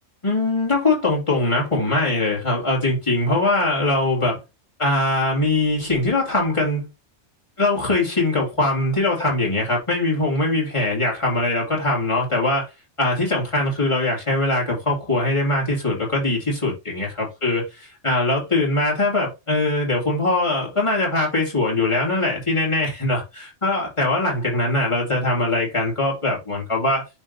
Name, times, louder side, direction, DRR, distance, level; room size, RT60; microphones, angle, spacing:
voice 1, 0.2-4.4 4.8-6.9 7.6-12.7 13.0-27.0, left 2 dB, 25° left, 2.7 m, -22 dB
11.0 x 3.6 x 2.7 m
omnidirectional pair, 1.2 m